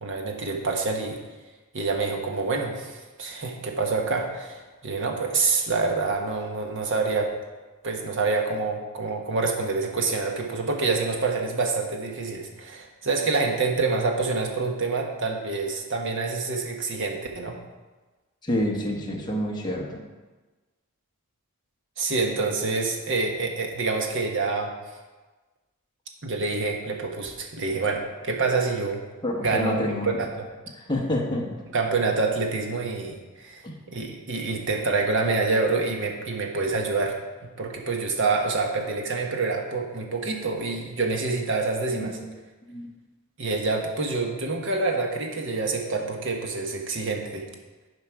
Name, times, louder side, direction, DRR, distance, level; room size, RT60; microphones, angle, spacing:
voice 1, 0.0-1.2 1.7-7.4 7.8-17.6 22.0-24.7 26.2-29.0 29.4-30.5 31.7-33.6 33.9-37.2 37.6-42.2 43.4-47.4, right 3 dB, 60° right, 2 dB, 1.3 m, -27 dB
voice 2, 18.4-20.0 29.2-30.2 30.7-31.5 33.6-33.8 41.9-42.3 42.7-42.9, left 1 dB, 20° left, -1 dB, 1.2 m, -28 dB
10.0 x 5.2 x 4.7 m, 1.2 s
head